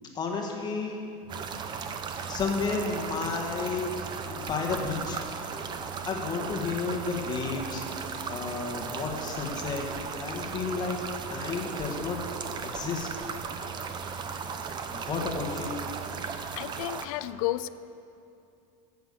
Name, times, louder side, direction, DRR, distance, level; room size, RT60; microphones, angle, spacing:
voice 1, 0.1-1.0 2.3-4.0 4.3-5.2 6.0-9.9 10.2-11.0 11.3-12.2 12.6-13.1 14.9-15.8, left 4 dB, 20° left, 1 dB, 1.6 m, -32 dB
sound 1, 1.3-17.1, right 6 dB, 25° right, 0.6 m, -36 dB
voice 2, 16.2-17.7, left 16 dB, 75° left, 15 dB, 0.5 m, -33 dB
13.5 x 8.2 x 6.9 m, 2.6 s
supercardioid pair, 155°, 18 cm